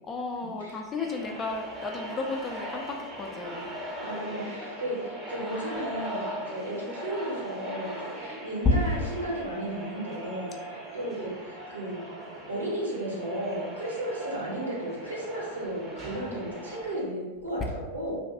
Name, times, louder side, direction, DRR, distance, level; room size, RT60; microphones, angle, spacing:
voice 1, 0.0-3.7, left 3 dB, 25° left, 3 dB, 0.3 m, -34 dB
sound 1, 1.0-17.0, equal, 20° right, 0.6 m, -40 dB
voice 2, 4.0-12.0 12.5-18.2, right 1 dB, 80° right, -5 dB, 0.8 m, -34 dB
2.6 x 2.2 x 2.5 m, 1.2 s
figure-of-eight pair, 90°, 0 cm